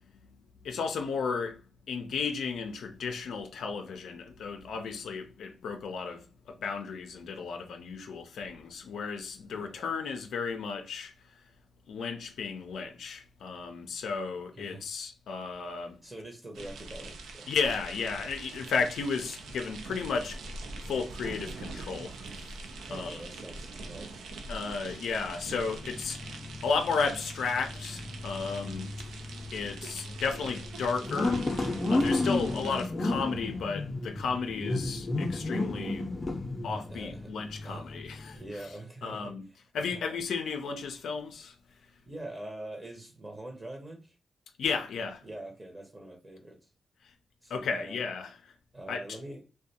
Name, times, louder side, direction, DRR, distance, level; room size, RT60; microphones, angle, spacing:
voice 1, 0.6-1.6 1.9-11.1 11.9-16.0 17.5-20.4 20.8-22.6 22.9-23.3 24.5-26.2 26.6-28.9 29.5-31.4 31.9-36.1 36.6-38.4 39.0-39.4 39.7-41.6 44.6-45.2 47.5-48.4 48.9-49.0, left 5 dB, 85° left, 0.4 m, -33 dB
voice 2, 14.5-14.9 16.0-17.6 22.9-24.2 24.9-25.0 36.9-37.3 37.6-40.0 42.1-44.2 45.2-46.7 47.4-48.0 48.7-49.4, right 1 dB, 25° right, 0.7 m, -44 dB
sound 1, 16.5-32.9, right 3 dB, 85° right, 0.4 m, -44 dB
sound 2, 25.3-38.6, left 2 dB, 35° left, 0.5 m, -34 dB
2.4 x 2.1 x 2.6 m
cardioid pair, 65°, 0 cm